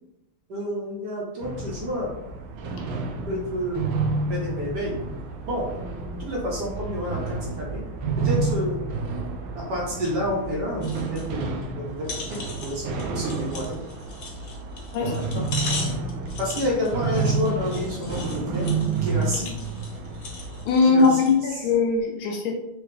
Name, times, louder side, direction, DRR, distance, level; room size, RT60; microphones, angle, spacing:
voice 1, 0.5-2.1 3.2-3.9 4.3-5.0 5.4-5.7 6.2-7.8 8.2-8.8 9.5-13.8 15.0-15.5 16.2-18.7 19.0-19.5 20.8-21.6, equal, 60° right, -3 dB, 1.3 m, -29 dB
sound 1, 1.4-20.7, right 3 dB, 75° right, 1.3 m, -30 dB
sound 2, 10.8-11.3 11.6-11.7 12.0-21.4 21.9-22.0, left 3 dB, 90° left, 0.5 m, -38 dB
voice 2, 14.9-15.4 20.7-22.6, left 4 dB, 75° left, 2 dB, 1.4 m, -21 dB
4.8 x 2.6 x 3.2 m, 0.89 s
omnidirectional pair, 2.4 m